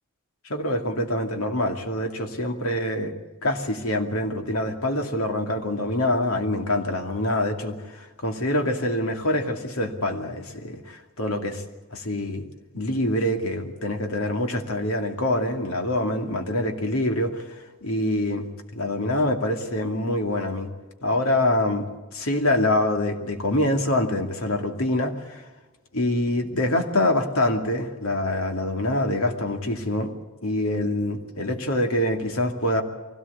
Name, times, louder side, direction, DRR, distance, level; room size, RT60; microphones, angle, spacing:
voice 1, 0.5-3.1 3.4-11.6 11.9-12.5 12.7-18.5 18.7-20.7 21.0-25.5 25.9-30.1 30.4-32.8, left 1 dB, 75° left, 4 dB, 2.5 m, -25 dB
23.5 x 17.5 x 8.4 m, 1.2 s
head